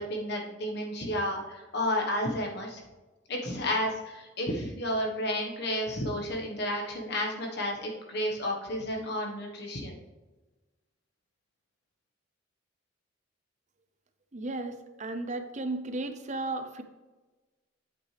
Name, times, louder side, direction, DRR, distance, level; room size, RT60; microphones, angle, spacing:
voice 1, 0.0-2.8 3.3-10.0, left 1 dB, 55° left, 1 dB, 1.4 m, -31 dB
voice 2, 14.3-16.8, right 2 dB, 35° right, 8 dB, 0.7 m, -34 dB
8.6 x 8.3 x 3.4 m, 1.2 s
head